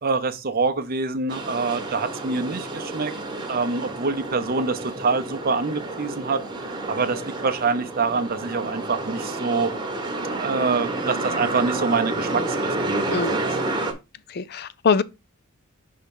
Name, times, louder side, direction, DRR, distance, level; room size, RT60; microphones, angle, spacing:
voice 1, 0.0-3.1 3.5-9.7 10.4-13.6, right 4 dB, 40° right, 0.7 m, -26 dB
sound 1, 1.3-13.9, right 2 dB, 20° right, 1.1 m, -30 dB
voice 2, 14.3-15.0, left 5 dB, 45° left, 0.4 m, -22 dB
5.6 x 3.6 x 5.3 m
head